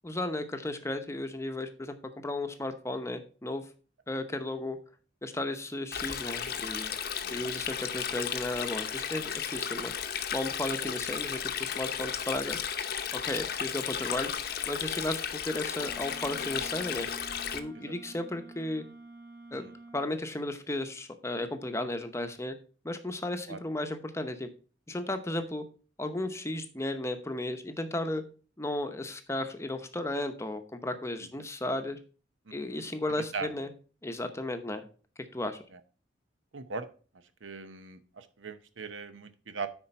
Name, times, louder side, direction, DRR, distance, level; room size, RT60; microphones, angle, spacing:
voice 1, 0.0-3.6 4.1-4.8 5.2-6.9 7.3-9.9 10.3-12.6 13.1-14.3 14.7-17.1 17.5-18.8 19.5-19.6 19.9-22.6 22.8-24.5 24.9-25.6 26.0-28.2 28.6-32.0 32.5-33.7 34.0-34.8 35.3-35.6, left 1 dB, 15° left, 7 dB, 0.8 m, -34 dB
Stream, 5.9-17.6, left 8 dB, 55° left, 0.7 m, -34 dB
Wind instrument woodwind instrument, 15.7-20.1, right 2 dB, 50° right, 3.2 m, -49 dB
voice 2, 32.5-32.8 33.2-33.5 35.7-35.8 36.5-36.9 37.4-39.7, right 4 dB, 85° right, 10 dB, 0.8 m, -40 dB
9.9 x 4.4 x 4.3 m, 0.38 s
head